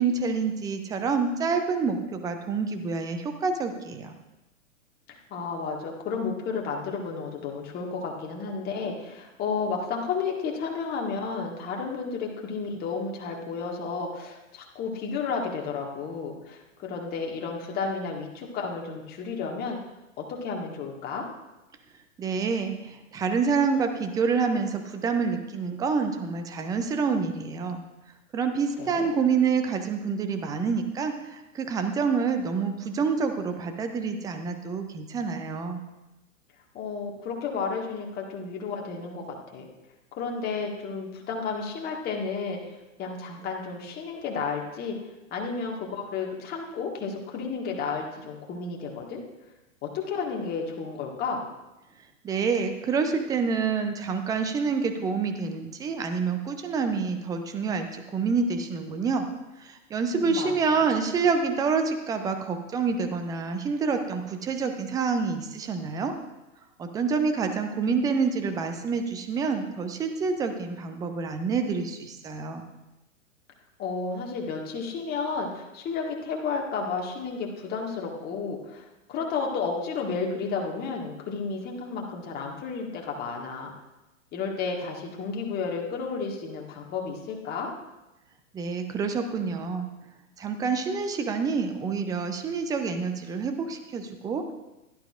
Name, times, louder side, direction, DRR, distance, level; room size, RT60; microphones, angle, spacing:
voice 1, 0.0-4.2 22.2-27.8 28.3-35.8 52.2-59.2 59.6-66.1 66.8-72.7 88.5-89.9 90.4-94.5, right 5 dB, 10° right, 6 dB, 0.6 m, -27 dB
voice 2, 5.1-19.8 20.2-21.2 28.8-29.1 36.7-39.2 39.5-39.7 40.1-45.0 45.3-49.2 49.8-51.4 60.0-60.8 73.8-83.7 84.3-87.7, left 5 dB, 25° left, 0 dB, 1.7 m, -32 dB
16.0 x 11.5 x 2.5 m, 1.0 s
figure-of-eight pair, 105°, 40 cm